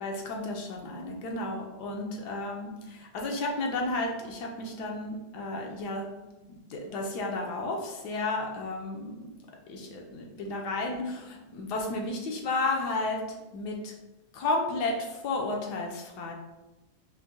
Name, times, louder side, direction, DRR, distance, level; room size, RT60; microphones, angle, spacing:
voice 1, 0.0-6.0 6.5-9.2 9.7-13.2 13.5-13.9 14.3-16.3, left 2 dB, 80° left, 1 dB, 1.2 m, -32 dB
4.5 x 2.6 x 2.7 m, 1.0 s
omnidirectional pair, 1.8 m